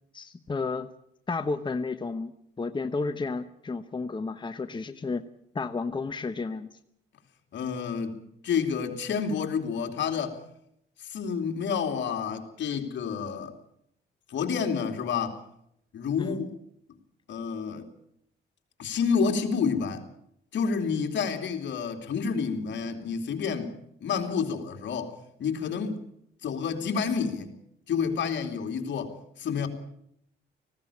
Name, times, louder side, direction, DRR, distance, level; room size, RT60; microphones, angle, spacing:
voice 1, 0.1-0.9 1.3-2.3 2.6-5.3 5.5-6.7 16.2-16.4, left 4 dB, 25° left, 9 dB, 1.0 m, -32 dB
voice 2, 7.5-8.2 8.4-10.4 11.0-13.5 14.3-15.4 15.9-16.5 17.3-17.9 18.8-20.0 20.5-23.7 24.0-25.1 25.4-26.0 26.4-27.5 27.9-29.7, left 6 dB, 65° left, 4 dB, 3.0 m, -29 dB
19.0 x 16.0 x 8.6 m, 0.75 s
cardioid pair, 90°, 20 cm